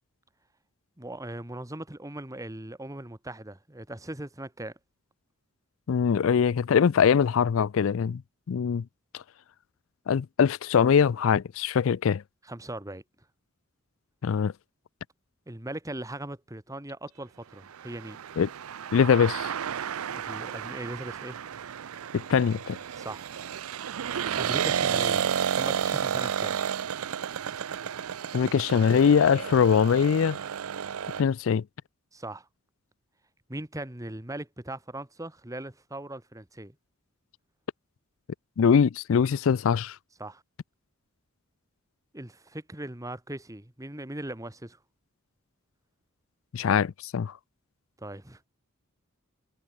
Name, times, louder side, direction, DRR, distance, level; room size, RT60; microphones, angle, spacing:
voice 1, 1.0-4.7 12.5-13.0 15.5-18.2 20.1-21.4 22.9-23.3 24.4-25.3 25.6-26.6 32.1-32.5 33.5-36.7 40.2-40.4 42.1-44.8 48.0-48.4, right 1 dB, 15° right, 1.5 m, -39 dB
voice 2, 5.9-8.2 8.5-8.8 9.1-9.2 10.1-12.2 14.2-14.5 18.4-18.5 18.9-19.5 22.1-22.8 28.3-30.4 31.2-31.6 38.6-40.0 46.5-47.3, left 7 dB, 65° left, 0.4 m, -22 dB
sound 1, 17.7-31.2, right 8 dB, 90° right, 0.5 m, -32 dB
head